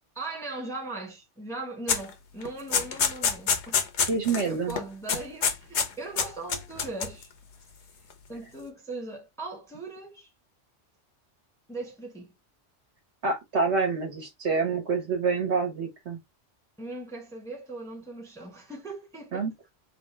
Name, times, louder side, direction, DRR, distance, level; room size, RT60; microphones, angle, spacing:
voice 1, 0.1-3.8 4.4-7.3 8.3-10.3 11.7-12.3 16.8-19.7, right 2 dB, 5° left, 0.8 m, -39 dB
sound 1, 1.9-2.1 2.4-4.4 4.7-4.8 5.1-5.9 6.2-7.2, left 6 dB, 70° left, 1.1 m, -26 dB
voice 2, 4.1-4.7 13.2-16.2 19.3-19.5, right 4 dB, 65° right, 1.5 m, -27 dB
3.5 x 2.4 x 4.2 m
omnidirectional pair, 1.3 m